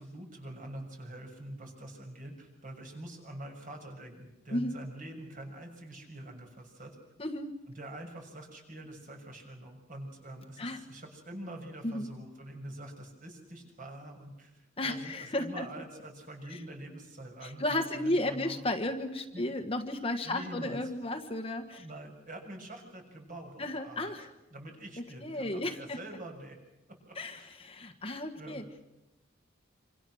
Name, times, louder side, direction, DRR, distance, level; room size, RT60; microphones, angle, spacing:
voice 1, 0.0-7.0 7.8-18.6 19.3-19.4 20.2-20.8 21.8-24.2 24.5-26.6 27.1-27.5 28.4-28.6, right 1 dB, 45° right, 3 dB, 6.8 m, -45 dB
voice 2, 7.2-7.5 10.6-10.8 11.8-12.1 14.8-15.7 17.4-21.9 23.6-24.3 25.2-26.0 27.2-28.8, left 1 dB, 30° left, 5 dB, 1.6 m, -34 dB
26.5 x 26.5 x 6.5 m, 0.97 s
head